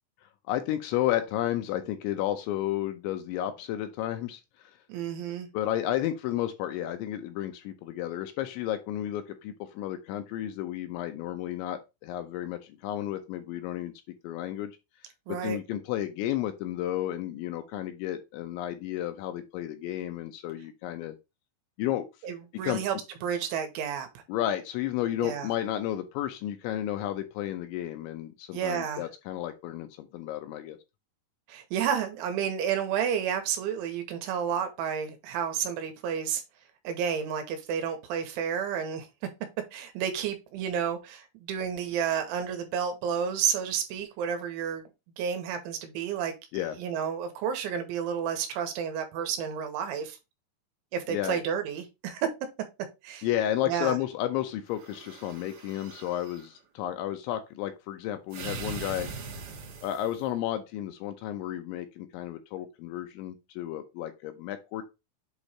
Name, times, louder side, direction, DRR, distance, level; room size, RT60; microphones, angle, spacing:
voice 1, 0.5-4.4 5.5-13.9 14.2-14.7 15.3-21.1 21.8-22.1 22.6-22.8 24.3-30.8 46.5-46.8 51.1-51.4 53.2-59.1 59.8-64.8, left 12 dB, 80° left, 2.8 m, -32 dB
voice 2, 4.9-5.5 15.3-15.6 22.2-23.0 23.2-24.2 25.2-25.5 28.5-29.0 31.5-36.4 36.8-39.1 39.7-44.8 45.2-50.2 50.9-52.3 53.0-53.3 53.7-54.0, right 8 dB, 80° right, 3.3 m, -31 dB
sound 1, 54.7-56.5 58.3-60.2, right 5 dB, 65° right, 2.5 m, -41 dB
8.0 x 3.1 x 4.2 m
omnidirectional pair, 5.7 m